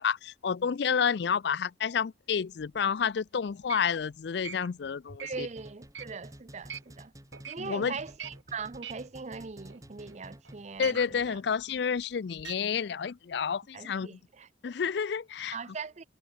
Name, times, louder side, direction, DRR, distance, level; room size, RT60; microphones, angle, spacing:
voice 1, 0.0-5.5 7.6-7.9 10.8-14.2 14.6-15.6, left 6 dB, 60° left, 0.4 m, -30 dB
sound 1, 2.3-3.0 3.5-7.0 7.3-7.7 8.0-10.2 10.4-12.5, right 8 dB, 75° right, 3.4 m, -44 dB
voice 2, 5.2-7.1 7.5-11.4 13.7-14.5 15.5-16.0, right 5 dB, 35° right, 0.5 m, -41 dB
sound 2, 5.3-10.8, equal, 15° right, 4.4 m, -50 dB
head